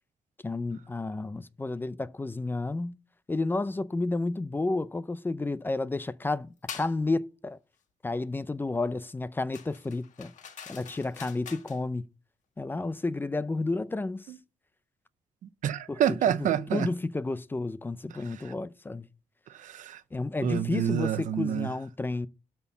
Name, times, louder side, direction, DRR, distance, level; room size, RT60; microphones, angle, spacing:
voice 1, 0.4-3.0 3.3-7.6 8.0-10.3 10.7-12.1 12.6-14.3 15.9-19.1 20.1-22.3, left 2 dB, 15° left, 0.5 m, -31 dB
sound 1, 6.7-7.0 9.5-11.8, left 7 dB, 80° left, 1.3 m, -44 dB
voice 2, 15.4-16.9 18.4-18.5 19.5-20.0 20.4-21.7, right 9 dB, 85° right, 0.7 m, -28 dB
12.0 x 4.4 x 7.0 m
cardioid pair, 125°, 13 cm